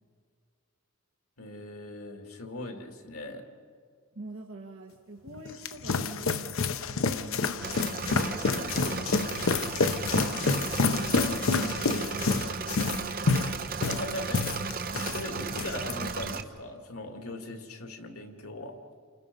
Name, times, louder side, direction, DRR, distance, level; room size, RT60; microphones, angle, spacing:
voice 1, 1.4-3.5 13.8-14.5 15.1-18.8, left 1 dB, 85° left, 5 dB, 2.3 m, -39 dB
voice 2, 4.1-7.7 10.3-13.9, right 2 dB, 65° right, 2 dB, 1.5 m, -45 dB
sound 1, 5.3-15.2 15.5-15.9, left 4 dB, 70° left, 0.7 m, -28 dB
Engine / Mechanisms, 7.6-16.4, right 4 dB, 40° right, 1.0 m, -35 dB
29.0 x 28.5 x 5.4 m, 2.1 s
head